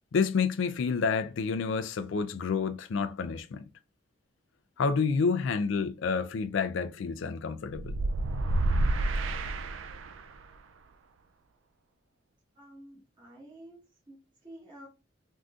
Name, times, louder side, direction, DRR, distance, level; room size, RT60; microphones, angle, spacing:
voice 1, 0.1-3.7 4.8-7.9, left 5 dB, 70° left, 0.4 m, -29 dB
sound 1, 7.7-10.4, right 2 dB, 75° right, 0.3 m, -29 dB
voice 2, 12.5-13.8 14.1-14.9, right 1 dB, 25° right, 1.1 m, -50 dB
3.6 x 2.6 x 2.3 m
head